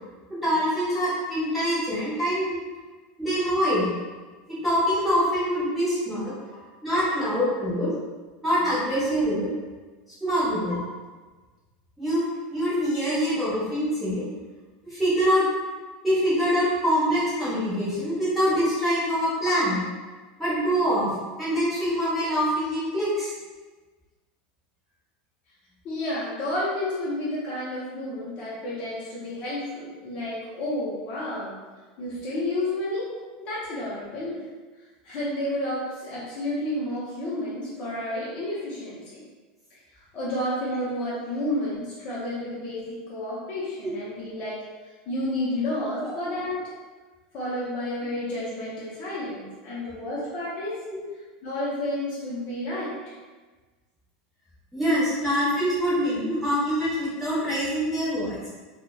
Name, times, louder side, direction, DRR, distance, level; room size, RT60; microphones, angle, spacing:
voice 1, 0.3-2.7 3.2-3.8 4.5-6.3 6.8-7.9 8.4-9.5 10.2-10.8 12.0-12.2 12.5-14.2 14.9-15.4 16.0-19.9 20.4-21.1 21.4-23.3 43.8-43.9 46.0-46.1 54.7-58.5, equal, ahead, -11 dB, 0.8 m, -24 dB
voice 2, 25.8-31.5 32.0-33.1 33.4-34.5 35.0-39.2 40.1-44.6 45.1-46.6 47.3-50.9 51.4-53.1, left 1 dB, 30° left, -9 dB, 0.6 m, -31 dB
2.8 x 2.0 x 2.2 m, 1.3 s
supercardioid pair, 175°, 4 cm